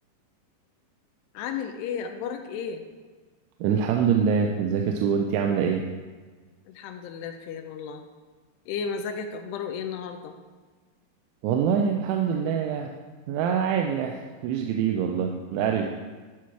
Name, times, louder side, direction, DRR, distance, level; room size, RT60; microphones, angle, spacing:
voice 1, 1.3-2.8 6.7-8.0 8.7-10.3, left 6 dB, 80° left, 6 dB, 2.5 m, -33 dB
voice 2, 3.6-5.9 11.4-12.9 13.3-15.9, right 7 dB, 90° right, 2 dB, 3.0 m, -25 dB
11.0 x 6.0 x 4.7 m, 1.4 s
omnidirectional pair, 5.3 m